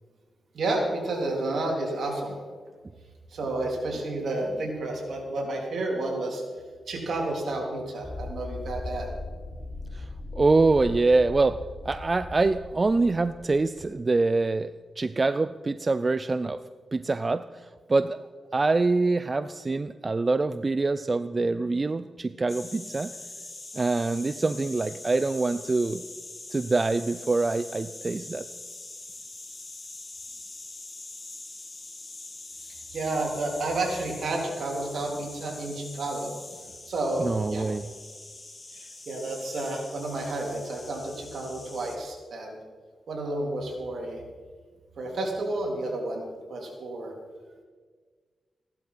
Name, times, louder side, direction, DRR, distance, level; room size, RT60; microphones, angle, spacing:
voice 1, 0.5-2.4 3.3-6.4 6.9-9.1 32.9-36.4 36.9-37.7 38.7-42.6 43.1-44.2 45.0-47.1, right 2 dB, 70° right, 0 dB, 3.6 m, -31 dB
sound 1, 8.0-14.2, left 2 dB, 15° left, 3.3 m, -39 dB
voice 2, 10.3-11.6 11.8-16.6 16.9-18.2 18.5-23.1 23.7-26.0 26.5-28.5 37.2-37.9, right 3 dB, 35° right, 13 dB, 0.4 m, -25 dB
sound 2, 22.5-42.0, left 2 dB, 30° left, 2.4 m, -43 dB
16.0 x 11.5 x 5.7 m, 1.5 s
cardioid pair, 85°, 0 cm